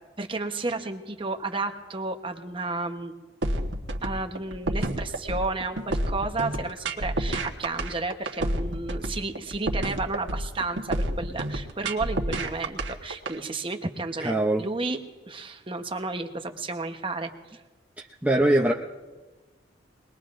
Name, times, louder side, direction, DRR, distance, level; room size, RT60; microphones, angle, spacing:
voice 1, 0.2-3.1 4.0-15.0 15.3-17.6, right 3 dB, 30° right, 5 dB, 1.0 m, -32 dB
sound 1, 3.4-13.3, right 1 dB, 75° right, 1.3 m, -29 dB
voice 2, 14.2-14.6 18.2-18.7, right 1 dB, 10° right, -1 dB, 0.6 m, -21 dB
24.0 x 20.5 x 2.6 m, 1.3 s
head